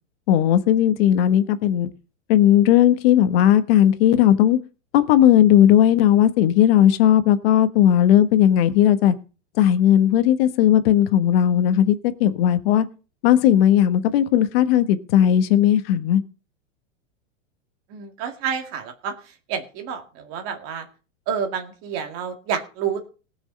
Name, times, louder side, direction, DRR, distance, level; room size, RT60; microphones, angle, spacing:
voice 1, 0.3-1.9 2.3-4.6 4.9-9.1 9.6-12.9 13.2-16.2, left 11 dB, 50° left, 12 dB, 1.3 m, -16 dB
voice 2, 17.9-19.1 19.5-20.8 21.3-23.1, right 7 dB, 35° right, 6 dB, 2.1 m, -29 dB
18.5 x 6.4 x 5.3 m, 0.35 s
supercardioid pair, 155°, 38 cm